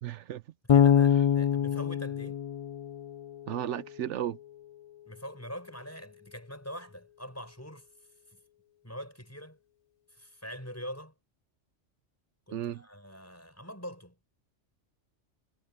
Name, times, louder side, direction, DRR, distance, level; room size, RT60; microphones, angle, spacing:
voice 1, 0.0-0.4 3.5-4.4 12.5-12.8, right 11 dB, 75° right, 0.9 m, -34 dB
Bass guitar, 0.7-3.7, left 8 dB, 60° left, 0.3 m, -25 dB
voice 2, 0.7-2.4 5.1-7.9 8.3-8.4 8.8-9.6 10.1-11.1 12.5-14.2, equal, 10° left, 5.9 m, -43 dB
omnidirectional pair, 1.2 m